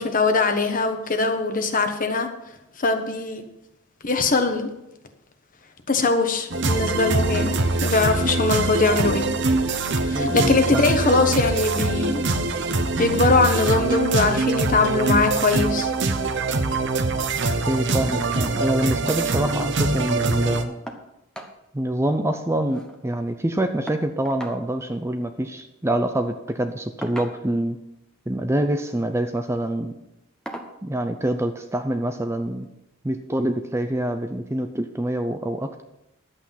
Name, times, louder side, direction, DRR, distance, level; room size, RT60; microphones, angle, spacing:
voice 1, 0.0-2.3 2.8-3.4 4.0-4.7 5.9-7.5 7.8-9.3 10.1-12.2 13.0-15.9, left 3 dB, 40° left, 6 dB, 1.2 m, -21 dB
sound 1, 6.5-20.6, right 3 dB, 55° right, 0.9 m, -23 dB
voice 2, 10.1-11.0 17.6-20.8 21.7-27.8 28.3-30.0 30.8-32.7 33.0-35.8, right 1 dB, 10° right, 7 dB, 0.5 m, -26 dB
sound 2, 20.9-21.1 21.3-21.6 21.9-22.0 22.3-23.0 23.9-24.6 25.8-26.0 27.0-27.7 28.7-29.0 29.5-29.7 30.5-30.8 32.0-32.1 32.6-32.7, equal, 5° left, 1.0 m, -38 dB
11.5 x 8.2 x 5.8 m, 0.90 s
head